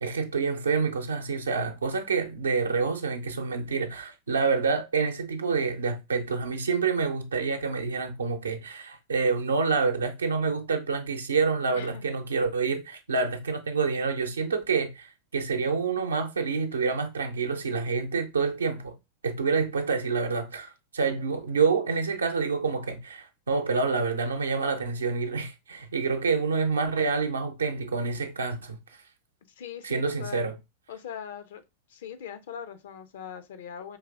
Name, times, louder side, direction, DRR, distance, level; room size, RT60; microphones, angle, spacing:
voice 1, 0.0-19.0 19.2-28.8 29.8-30.5, right 5 dB, 70° right, 0.6 m, -27 dB
voice 2, 29.6-30.5 30.9-31.6 31.9-34.0, left 8 dB, 60° left, 0.5 m, -40 dB
4.6 x 3.1 x 2.3 m
figure-of-eight pair, 90°, 0 cm